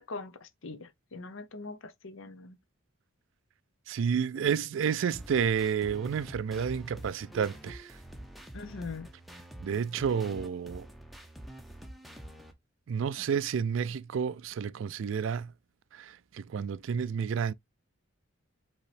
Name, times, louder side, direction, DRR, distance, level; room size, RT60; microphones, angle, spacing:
voice 1, 0.0-2.6 8.5-9.1, left 3 dB, 70° left, 0.8 m, -42 dB
voice 2, 3.9-8.0 9.6-10.9 12.9-15.5 15.9-17.5, right 7 dB, 65° right, 0.3 m, -30 dB
sound 1, 5.1-12.5, equal, ahead, 0.6 m, -46 dB
5.4 x 3.0 x 3.2 m
head